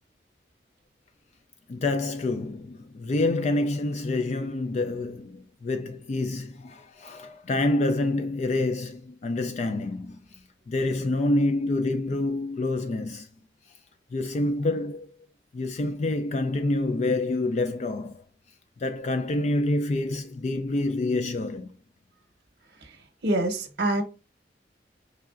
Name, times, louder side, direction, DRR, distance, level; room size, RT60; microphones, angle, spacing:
voice 1, 1.7-13.3 14.1-15.1 15.5-18.2 18.8-21.8, left 2 dB, 40° left, 0.3 m, -27 dB
voice 2, 23.2-24.0, right 1 dB, 60° right, 0.8 m, -25 dB
4.6 x 3.3 x 2.4 m
head